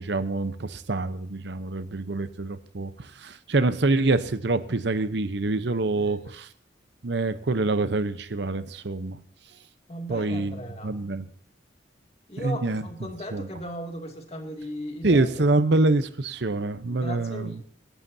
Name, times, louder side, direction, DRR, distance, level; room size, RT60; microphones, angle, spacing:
voice 1, 0.0-6.5 7.0-9.2 10.1-11.2 12.4-12.8 13.3-13.5 15.0-17.6, right 2 dB, 65° right, 13 dB, 0.8 m, -26 dB
voice 2, 5.9-6.3 9.9-11.0 12.3-15.3 16.9-17.6, equal, 35° left, 3 dB, 2.4 m, -37 dB
25.5 x 11.5 x 2.7 m, 0.62 s
head